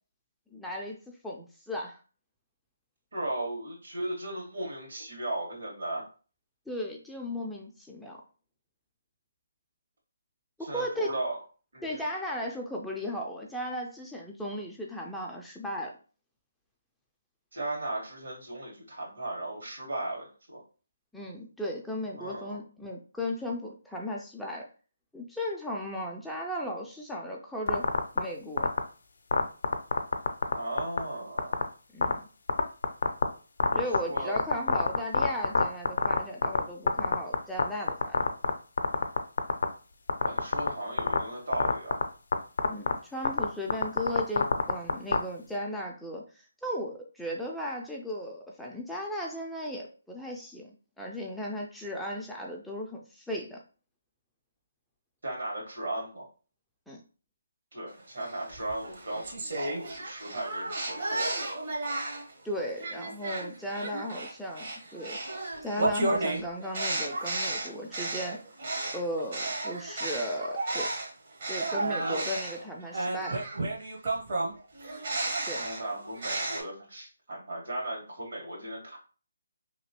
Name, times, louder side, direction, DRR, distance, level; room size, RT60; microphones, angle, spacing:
voice 1, 0.5-1.0 1.2-2.0 6.7-8.2 10.6-11.1 11.8-16.0 21.1-24.7 25.1-27.8 28.2-28.7 31.9-32.3 33.7-38.2 42.7-53.6 56.9-57.0 62.4-65.2 65.6-68.4 68.9-70.9 71.5-73.4 75.4-75.6, equal, ahead, -2 dB, 0.3 m, -36 dB
voice 2, 3.1-6.0 10.6-11.4 11.7-12.0 17.5-20.6 22.2-22.6 30.5-31.6 34.1-34.4 40.2-42.0 55.2-56.3 57.7-61.5 75.6-79.0, right 1 dB, 70° right, -2 dB, 1.7 m, -36 dB
sound 1, 27.7-28.2 28.6-28.8 29.3-30.5 30.8-31.0 31.4-31.6 32.0-32.1 32.5-33.2 33.6-36.6 36.9-37.6 37.9-38.5 38.8-39.6 40.1-40.7 41.0-41.2 41.5-42.0 42.3-42.4 42.6-42.9 43.2-43.4 43.7-45.2, left 4 dB, 65° left, 0.4 m, -22 dB
sound 2, 58.2-62.3 62.8-71.1 71.4-76.6, right 2 dB, 50° right, 1.0 m, -33 dB
2.9 x 2.7 x 2.9 m, 0.37 s
figure-of-eight pair, 150°, 0 cm